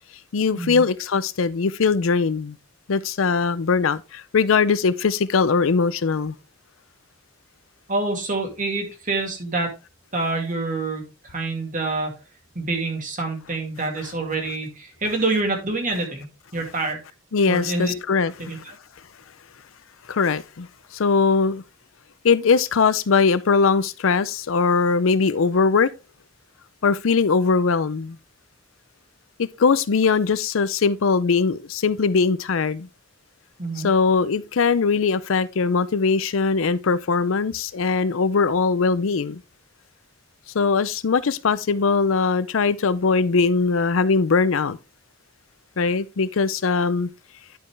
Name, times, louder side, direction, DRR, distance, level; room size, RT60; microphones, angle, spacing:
voice 1, 0.3-2.6 2.9-6.3 14.0-14.1 17.3-18.6 20.1-20.7 20.9-21.6 22.2-25.9 26.8-28.2 29.4-32.9 33.8-39.4 40.5-44.8 45.8-47.1, left 5 dB, 75° left, 0.5 m, -21 dB
voice 2, 7.9-9.7 10.1-12.2 12.6-17.0 17.5-17.9 18.4-18.7 33.6-33.9, right 3 dB, 40° right, 2.2 m, -27 dB
10.5 x 5.4 x 3.3 m
head